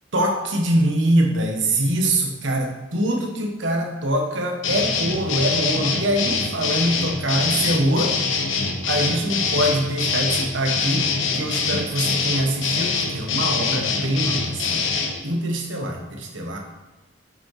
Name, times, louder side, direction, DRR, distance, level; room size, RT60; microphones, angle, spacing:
voice 1, 0.1-8.2 8.9-14.9 15.2-16.6, right 1 dB, 75° right, 2 dB, 1.3 m, -23 dB
sound 1, 4.6-15.1, left 4 dB, 80° left, 1.0 m, -24 dB
7.7 x 5.4 x 4.9 m, 1.1 s
head